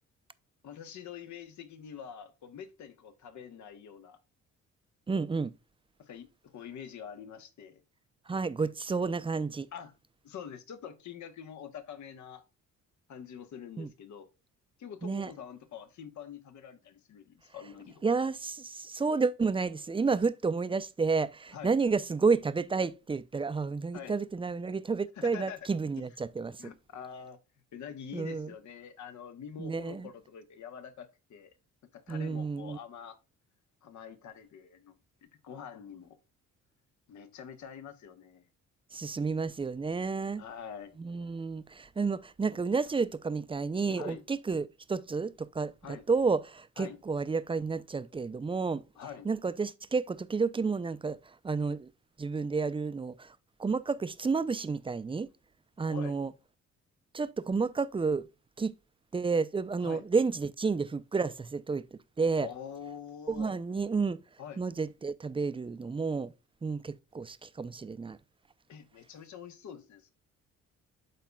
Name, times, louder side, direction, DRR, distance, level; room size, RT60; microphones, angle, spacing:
voice 1, 0.6-4.2 6.0-7.8 9.7-9.9 10.2-12.4 13.1-14.3 14.8-18.0 21.5-21.8 23.9-24.1 25.2-25.6 26.0-26.1 26.6-27.4 27.7-31.5 31.9-33.2 33.8-34.9 35.2-36.2 37.1-38.4 40.4-41.0 43.9-44.2 45.8-46.0 46.8-47.0 49.0-49.3 55.8-56.2 59.8-60.0 62.4-63.5 64.4-64.6 68.7-70.1, left 8 dB, 70° left, 1.2 m, -45 dB
voice 2, 5.1-5.5 8.3-9.7 13.8-13.9 15.0-15.3 18.0-26.6 28.1-28.5 29.6-30.1 32.1-32.8 38.9-40.4 41.0-48.8 49.2-51.2 51.4-51.9 52.2-53.3 53.6-55.3 55.8-56.3 57.1-58.3 58.6-58.7 59.1-61.8 62.2-62.5 63.3-64.2 64.6-66.3 66.6-68.2, right 4 dB, 20° right, 0.5 m, -31 dB
12.0 x 4.1 x 2.2 m
cardioid pair, 90°, 30 cm